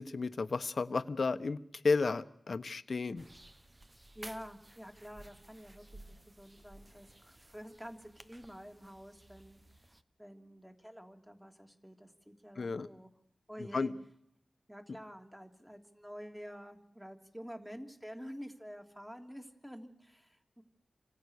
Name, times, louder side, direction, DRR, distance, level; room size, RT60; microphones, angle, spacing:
voice 1, 0.0-3.2 12.6-12.9 13.7-13.9, left 4 dB, 60° left, 11 dB, 1.3 m, -33 dB
sound 1, 3.2-10.0, right 1 dB, 20° right, 1.1 m, -56 dB
voice 2, 4.1-9.6 10.2-13.1 13.5-13.9 14.7-20.6, equal, 5° right, 5 dB, 3.2 m, -49 dB
29.5 x 26.5 x 6.7 m, 0.74 s
wide cardioid pair, 80°, 0 cm